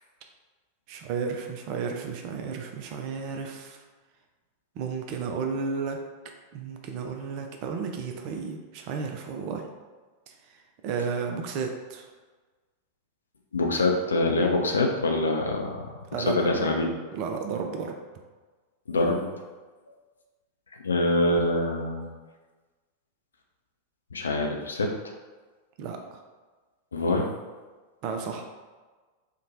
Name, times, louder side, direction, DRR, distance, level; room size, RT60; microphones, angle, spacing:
voice 1, 0.9-3.8 4.8-6.0 6.5-9.7 10.8-12.1 16.1-16.7 17.1-18.0 25.8-26.2 28.0-28.4, right 5 dB, 45° right, 3 dB, 0.4 m, -32 dB
voice 2, 13.5-16.9 18.9-19.3 20.8-22.1 24.1-25.0 26.9-27.3, left 2 dB, 70° left, 2 dB, 0.4 m, -25 dB
2.9 x 2.1 x 2.7 m, 1.3 s
figure-of-eight pair, 90°, 0 cm